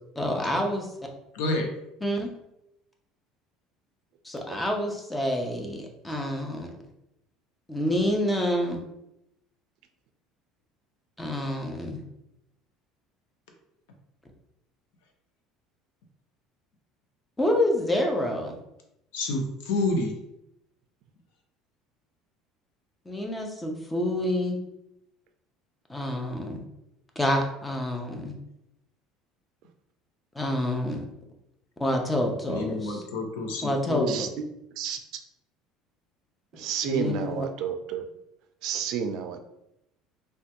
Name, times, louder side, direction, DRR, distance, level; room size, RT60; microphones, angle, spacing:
voice 1, 0.2-0.9 2.0-2.3 4.2-6.7 7.7-8.8 11.2-12.0 17.4-18.6 23.1-24.6 25.9-26.6 27.2-28.3 30.3-31.0 31.8-33.0 33.6-34.2 36.8-37.4, left 1 dB, 10° left, 2 dB, 0.5 m, -27 dB
voice 2, 1.3-1.7 19.1-20.1 32.5-34.2, left 2 dB, 90° left, 3 dB, 0.6 m, -28 dB
voice 3, 36.5-38.0 38.6-39.4, right 7 dB, 60° right, 6 dB, 0.4 m, -30 dB
3.2 x 2.2 x 2.9 m, 0.83 s
cardioid pair, 150°, 0 cm